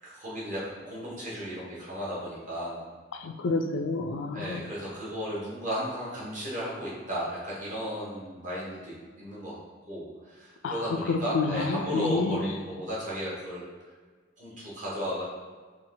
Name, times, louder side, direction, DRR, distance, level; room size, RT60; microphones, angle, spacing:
voice 1, 0.0-2.8 4.3-9.6 9.9-13.6 14.4-15.2, equal, 40° right, -7 dB, 1.2 m, -35 dB
voice 2, 3.2-4.6 10.6-12.4, left 3 dB, 70° left, 6 dB, 0.3 m, -29 dB
4.2 x 2.4 x 3.9 m, 1.5 s
head